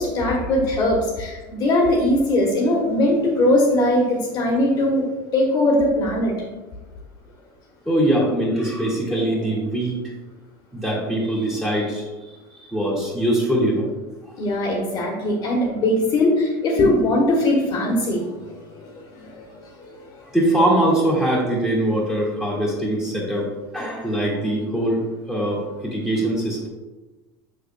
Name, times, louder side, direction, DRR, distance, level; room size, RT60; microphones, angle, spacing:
voice 1, 0.0-5.1 5.3-6.3 14.4-19.5 19.8-20.3, left 1 dB, 40° left, -2 dB, 1.3 m, -20 dB
voice 2, 7.8-10.0 10.7-12.1 12.6-13.9 20.3-23.5 23.7-25.0 25.3-26.7, right 1 dB, ahead, -5 dB, 1.8 m, -22 dB
6.5 x 6.5 x 2.2 m, 1.2 s
supercardioid pair, 140°, 11 cm